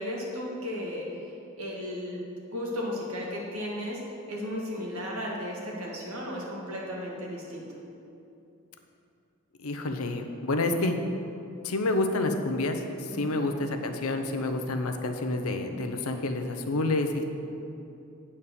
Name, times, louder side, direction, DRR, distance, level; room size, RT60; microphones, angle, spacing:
voice 1, 0.0-1.3 1.6-2.2 2.5-7.7 13.1-13.4, left 1 dB, 90° right, -3 dB, 1.7 m, -35 dB
voice 2, 9.6-11.0 11.6-17.2, left 2 dB, 90° left, 6 dB, 0.7 m, -28 dB
8.6 x 4.2 x 6.8 m, 2.7 s
head